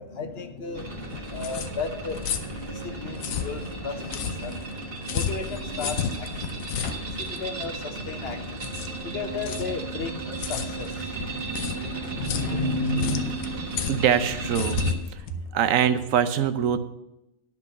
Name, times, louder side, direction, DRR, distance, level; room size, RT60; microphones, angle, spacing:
voice 1, 0.0-6.5 7.0-8.7 9.0-13.3, left 4 dB, 50° left, 7 dB, 1.2 m, -34 dB
sound 1, 0.7-14.9, right 2 dB, 45° right, 1.5 m, -34 dB
sound 2, 0.9-16.1, left 8 dB, 80° left, 1.2 m, -34 dB
sound 3, 6.7-10.6, left 2 dB, 25° left, 1.4 m, -50 dB
voice 2, 13.9-14.8 15.1-15.2 15.5-16.8, right 8 dB, 75° right, 11 dB, 1.1 m, -23 dB
10.5 x 6.1 x 6.5 m, 0.91 s
omnidirectional pair, 1.4 m